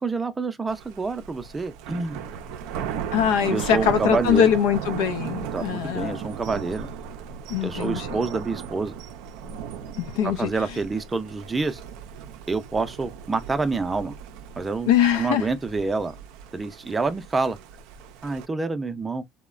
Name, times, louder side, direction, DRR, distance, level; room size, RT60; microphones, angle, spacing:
voice 1, 0.0-2.3 3.5-4.5 5.5-6.9 7.6-8.9 10.4-11.8 12.5-14.1 14.6-14.9 15.2-16.1 16.5-17.6 18.2-19.2, right 4 dB, 20° right, 0.5 m, -27 dB
Thunder, 0.7-18.5, right 8 dB, 80° right, 0.4 m, -36 dB
voice 2, 3.1-6.2 7.5-8.2 10.0-10.8 14.9-15.5, left 9 dB, 85° left, 0.5 m, -22 dB
2.9 x 2.1 x 2.3 m
supercardioid pair, 85°, 0 cm